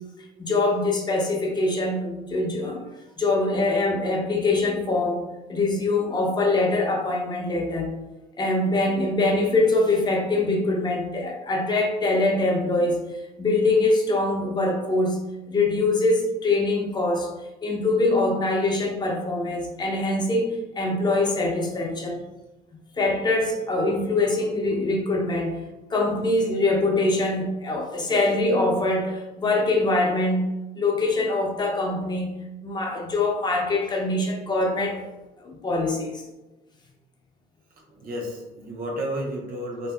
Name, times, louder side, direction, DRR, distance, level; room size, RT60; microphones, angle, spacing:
voice 1, 0.4-2.8 3.2-5.2 5.5-7.9 8.4-15.2 15.5-17.3 17.6-22.2 22.9-25.6 25.9-32.3 32.6-35.0 35.4-36.3, left 2 dB, 25° left, 0 dB, 0.6 m, -23 dB
voice 2, 37.9-39.9, equal, 60° right, -1 dB, 0.8 m, -32 dB
2.7 x 2.6 x 2.3 m, 1.0 s
cardioid pair, 110°, 17 cm